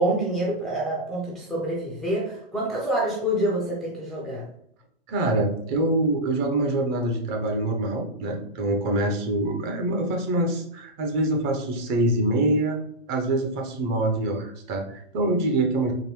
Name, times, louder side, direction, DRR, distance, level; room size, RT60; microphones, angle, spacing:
voice 1, 0.0-4.5, right 1 dB, ahead, -5 dB, 0.4 m, -27 dB
voice 2, 5.1-12.8 13.1-15.9, right 2 dB, 35° right, 2 dB, 0.8 m, -25 dB
3.9 x 2.7 x 3.0 m, 0.70 s
figure-of-eight pair, 105°, 31 cm